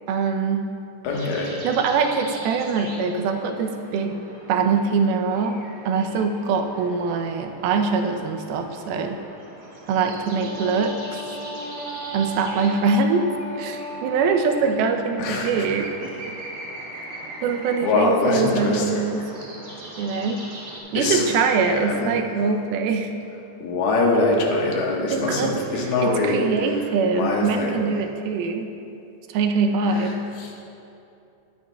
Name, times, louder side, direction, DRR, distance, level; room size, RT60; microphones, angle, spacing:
voice 1, 0.1-0.7 1.6-4.2 4.5-9.2 9.9-11.2 12.1-13.3 13.6-16.1 17.4-19.3 20.0-20.5 20.9-23.1 25.0-28.7 29.3-30.3, right 5 dB, 85° right, 4 dB, 2.5 m, -23 dB
voice 2, 1.0-1.6 15.2-15.7 17.8-19.0 20.9-21.3 21.7-22.1 23.6-26.7 27.1-27.8 29.9-30.1 30.4-30.5, left 3 dB, 85° left, -1 dB, 3.3 m, -23 dB
sound 1, 1.1-20.8, right 1 dB, 60° right, 0.8 m, -41 dB
Wind instrument woodwind instrument, 10.3-14.6, right 1 dB, 25° right, 1.6 m, -35 dB
19.5 x 9.4 x 2.3 m, 2.7 s
omnidirectional pair, 4.3 m